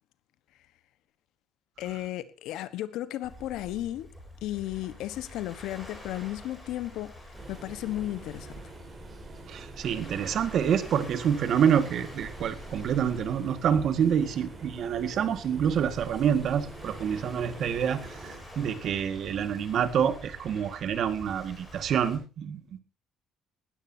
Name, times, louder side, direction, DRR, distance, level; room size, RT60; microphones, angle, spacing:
voice 1, 1.8-4.1 4.4-7.1 7.5-8.5, left 14 dB, 80° left, 1.3 m, -34 dB
Waves surf, 3.2-22.2, left 1 dB, 5° left, 7.8 m, -47 dB
sound 1, 7.3-18.4, right 3 dB, 25° right, 4.7 m, -47 dB
voice 2, 9.5-22.8, right 8 dB, 50° right, 1.8 m, -27 dB
19.0 x 13.5 x 2.8 m
cardioid pair, 155°, 0 cm